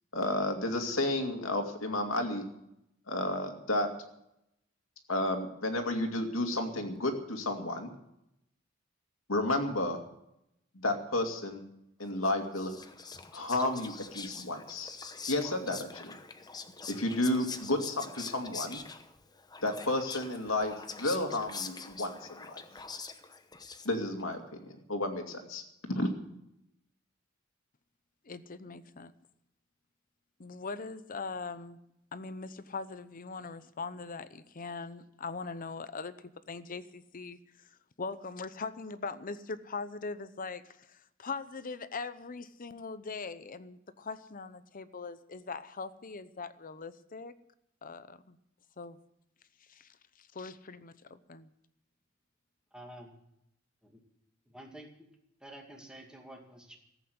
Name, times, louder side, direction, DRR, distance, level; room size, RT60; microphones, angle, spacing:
voice 1, 0.1-2.4 3.1-3.9 5.1-7.9 9.3-10.0 10.7-11.6 12.0-12.8 13.3-14.9 15.3-16.2 16.9-18.8 19.6-22.6 23.8-24.4 24.9-26.1, left 1 dB, 80° left, 4 dB, 2.4 m, -32 dB
Whispering, 12.2-24.2, left 5 dB, 20° left, 0.9 m, -44 dB
voice 2, 28.2-29.1 30.4-31.8 32.1-37.7 38.0-47.3 47.8-48.4 48.8-49.0 49.7-49.9 50.2-51.5, left 4 dB, 45° left, 13 dB, 0.8 m, -41 dB
voice 3, 52.7-53.1 53.8-54.0 54.5-55.1 55.4-56.8, right 1 dB, 5° right, 1 dB, 2.2 m, -49 dB
15.0 x 8.3 x 9.4 m, 0.81 s
head